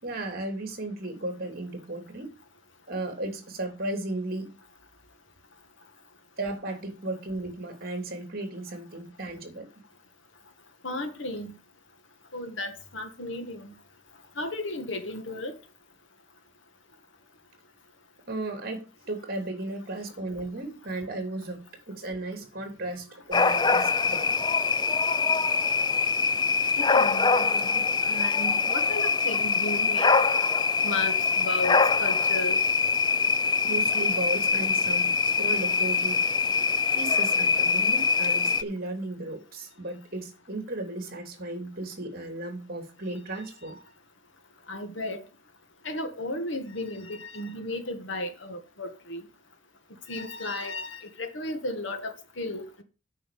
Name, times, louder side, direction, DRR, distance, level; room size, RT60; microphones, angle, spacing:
voice 1, 0.0-2.3 2.9-4.5 6.4-9.7 18.3-24.3 24.8-24.9 30.3-30.7 33.6-36.2 37.0-43.7, right 2 dB, 45° right, 2.9 m, -35 dB
voice 2, 10.8-11.5 12.3-13.7 14.3-15.5 26.8-30.1 30.8-32.6 43.6-43.8 44.7-45.2 45.8-49.2 50.1-52.8, left 2 dB, 70° left, 1.7 m, -34 dB
sound 1, 23.3-38.6, left 4 dB, 20° left, 0.4 m, -24 dB
8.9 x 5.7 x 6.8 m
head